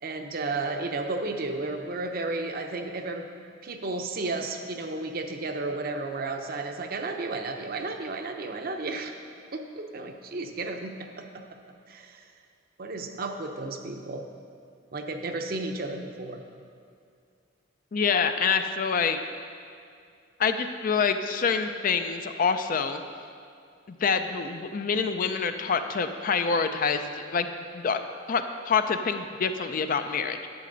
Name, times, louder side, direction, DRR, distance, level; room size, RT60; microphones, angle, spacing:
voice 1, 0.0-3.3 3.6-9.2 9.5-11.5 11.9-12.2 12.8-14.2 14.9-16.4, right 3 dB, 50° right, 5 dB, 0.7 m, -33 dB
voice 2, 17.9-19.2 20.4-23.0 23.9-28.0 28.3-30.4, left 5 dB, 45° left, 8 dB, 0.4 m, -26 dB
11.0 x 7.5 x 3.9 m, 2.3 s
head